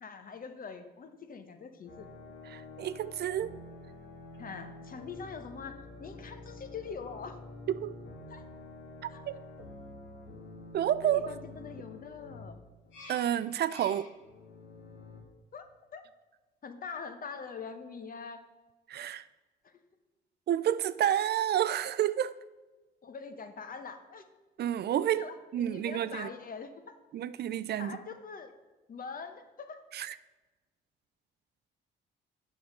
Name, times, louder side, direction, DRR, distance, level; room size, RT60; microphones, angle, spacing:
voice 1, 0.0-2.1 4.4-7.4 8.3-8.4 9.1-9.2 11.0-12.6 15.5-16.0 16.6-18.4 19.6-19.7 23.0-24.2 25.2-27.0 27.8-28.5 28.9-29.8, left 5 dB, 45° left, 1.0 m, -43 dB
sound 1, 1.8-15.2, left 2 dB, 75° left, 1.9 m, -48 dB
voice 2, 2.5-3.6 7.7-8.0 9.0-9.3 10.7-11.3 13.1-14.1 18.9-19.2 20.5-22.3 24.6-26.3 27.1-28.0 29.9-30.1, right 11 dB, 55° right, 0.4 m, -30 dB
7.8 x 5.3 x 6.4 m
cardioid pair, 90°, 20 cm